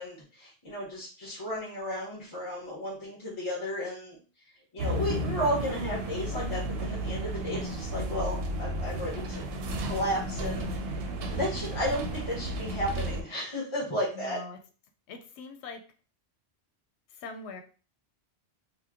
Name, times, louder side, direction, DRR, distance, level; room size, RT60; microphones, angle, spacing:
voice 1, 0.0-4.2 4.7-9.4 9.8-14.4, equal, 30° left, -4 dB, 0.9 m, -33 dB
sound 1, 4.8-13.2, right 1 dB, 70° right, 0.7 m, -33 dB
voice 2, 14.1-14.6 15.1-15.9 17.1-17.6, left 4 dB, 80° left, 6 dB, 0.8 m, -42 dB
2.9 x 2.1 x 3.5 m, 0.37 s
omnidirectional pair, 1.1 m